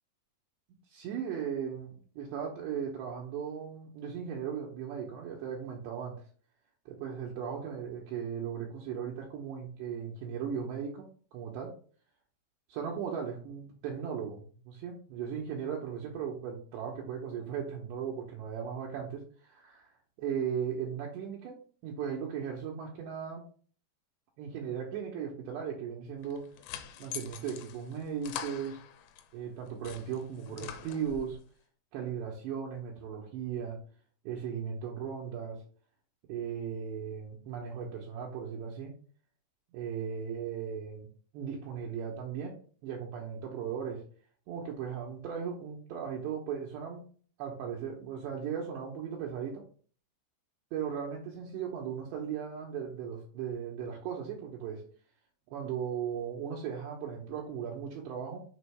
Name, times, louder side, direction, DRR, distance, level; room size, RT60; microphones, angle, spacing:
voice 1, 0.9-6.2 6.9-11.7 12.7-19.9 20.2-23.4 24.4-26.5 27.0-28.8 29.3-31.4 31.9-33.8 34.2-35.6 36.3-38.9 39.7-41.1 41.3-42.5 42.8-44.0 44.5-47.0 47.4-49.6 50.7-54.8 55.5-58.4, right 7 dB, 75° right, -2 dB, 2.7 m, -37 dB
sound 1, 26.2-29.3 29.7-31.4, left 9 dB, 85° left, 3.2 m, -44 dB
7.2 x 5.1 x 3.4 m, 0.43 s
omnidirectional pair, 5.9 m